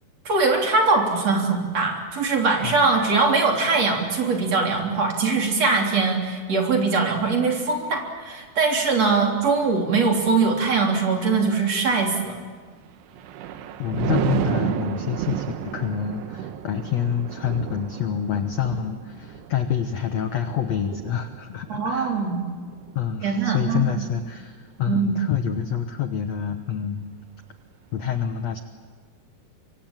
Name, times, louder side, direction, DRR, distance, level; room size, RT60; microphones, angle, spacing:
voice 1, 0.3-12.4 21.7-22.4 23.2-23.8 24.9-25.1, right 4 dB, 40° right, 1 dB, 4.3 m, -22 dB
Thunder, 12.8-24.3 24.8-25.1, right 10 dB, 85° right, 3.3 m, -32 dB
voice 2, 13.8-22.2 22.9-27.1 27.9-28.6, left 8 dB, 75° left, 7 dB, 1.6 m, -27 dB
25.0 x 25.0 x 9.0 m, 1.5 s
omnidirectional pair, 4.8 m